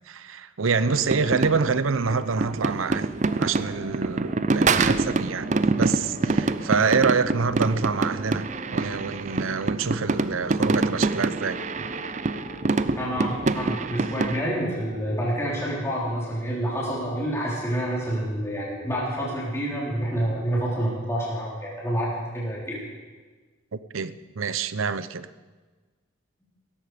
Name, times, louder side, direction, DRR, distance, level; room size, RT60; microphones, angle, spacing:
voice 1, 0.1-3.1 3.4-5.5 5.8-8.5 8.7-11.6 23.7-25.3, right 5 dB, 90° right, 0.7 m, -26 dB
sound 1, 0.9-14.4, right 3 dB, 35° right, 0.5 m, -26 dB
sound 2, 3.2-15.8, left 1 dB, 40° left, 2.6 m, -46 dB
voice 2, 13.0-22.8, equal, 15° left, 4.1 m, -28 dB
17.5 x 14.5 x 5.1 m
head